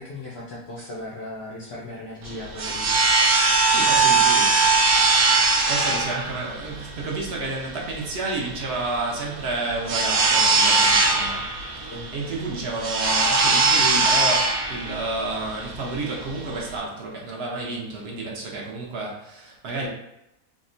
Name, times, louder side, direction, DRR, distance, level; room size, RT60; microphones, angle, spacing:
voice 1, 0.0-3.0 11.9-12.1, left 1 dB, 65° left, -5 dB, 0.6 m, -37 dB
sound 1, 2.2-16.8, right 3 dB, 75° right, 1.1 m, -21 dB
voice 2, 3.6-4.6 5.7-19.9, right 3 dB, 55° right, -2 dB, 0.7 m, -31 dB
3.6 x 2.1 x 2.5 m, 0.87 s
omnidirectional pair, 1.6 m